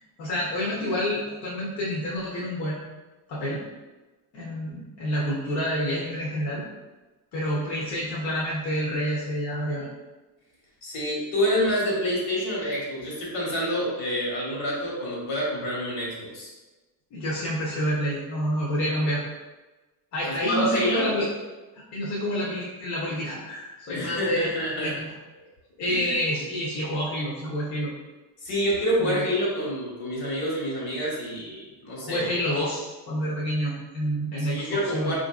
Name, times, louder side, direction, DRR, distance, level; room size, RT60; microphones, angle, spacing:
voice 1, 0.2-2.8 3.3-3.6 4.3-6.6 7.3-9.9 17.1-19.2 20.1-21.3 21.7-25.1 25.8-27.9 29.0-29.3 32.0-35.1, equal, 45° left, -6 dB, 0.8 m, -28 dB
voice 2, 10.8-16.5 20.2-21.1 23.9-24.9 25.9-26.1 28.4-32.3 34.4-35.1, equal, 65° left, -4 dB, 1.4 m, -27 dB
3.9 x 2.6 x 2.3 m, 1.2 s
cardioid pair, 140°, 39 cm